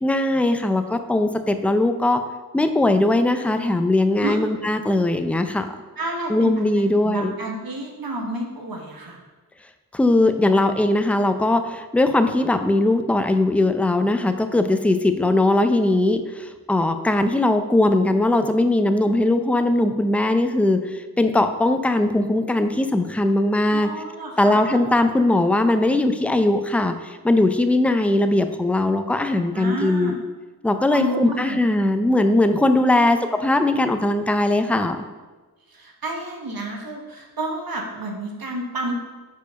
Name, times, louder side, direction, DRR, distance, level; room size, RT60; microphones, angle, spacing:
voice 1, 0.0-2.2 2.5-5.7 6.3-7.3 9.9-23.9 24.4-30.1 30.6-35.0, left 2 dB, 5° left, 8 dB, 0.4 m, -20 dB
voice 2, 6.0-6.5 7.0-9.2 23.7-24.8 29.5-30.2 30.9-31.6 32.8-33.1 35.7-38.9, right 1 dB, 65° right, 1 dB, 1.2 m, -30 dB
5.1 x 4.6 x 5.2 m, 1.2 s
wide cardioid pair, 55°, 38 cm